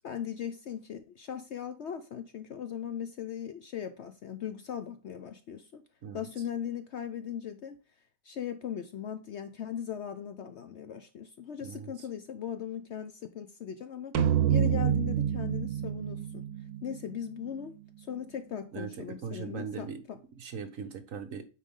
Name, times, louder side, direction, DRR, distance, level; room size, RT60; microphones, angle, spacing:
voice 1, 0.0-5.8 6.1-7.8 8.2-14.2 14.5-16.5 16.8-20.2, left 9 dB, 60° left, 0.7 m, -39 dB
voice 2, 11.6-11.9 18.7-20.0 20.4-21.5, right 6 dB, 60° right, 1.3 m, -39 dB
sound 1, 14.1-17.6, right 10 dB, 85° right, 1.3 m, -28 dB
9.2 x 4.2 x 3.6 m
omnidirectional pair, 1.6 m